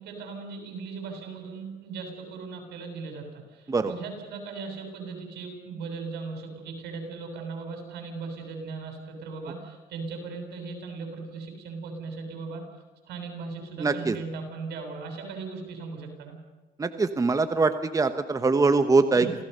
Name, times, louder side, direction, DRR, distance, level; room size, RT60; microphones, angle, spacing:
voice 1, 0.0-12.6 13.0-16.4 19.2-19.4, right 4 dB, 75° right, 4 dB, 7.6 m, -38 dB
voice 2, 13.8-14.2 16.8-19.3, right 3 dB, 20° right, 9 dB, 1.2 m, -23 dB
27.5 x 17.5 x 6.9 m, 1.2 s
cardioid pair, 110°, 17 cm